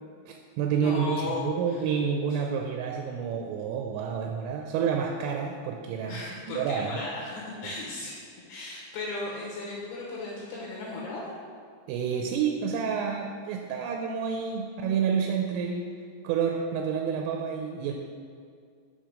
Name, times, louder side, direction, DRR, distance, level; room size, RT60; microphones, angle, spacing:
voice 1, 0.3-6.2 6.6-6.9 7.6-7.8 11.9-15.9 16.2-17.9, right 7 dB, 85° right, 2 dB, 3.1 m, -29 dB
voice 2, 0.8-1.5 6.1-11.3, left 2 dB, 75° left, -5 dB, 2.9 m, -36 dB
7.3 x 4.6 x 5.0 m, 2.2 s
omnidirectional pair, 5.7 m